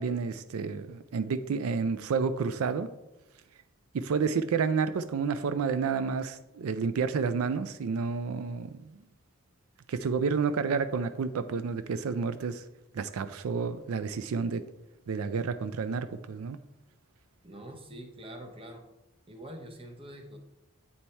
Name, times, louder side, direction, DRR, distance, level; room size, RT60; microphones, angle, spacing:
voice 1, 0.0-2.9 3.9-9.0 9.9-12.6 12.9-14.6 15.1-16.6, right 5 dB, 85° right, 0.4 m, -30 dB
voice 2, 17.4-18.8 19.3-20.4, right 1 dB, 25° right, 0.8 m, -45 dB
8.4 x 4.2 x 4.4 m
head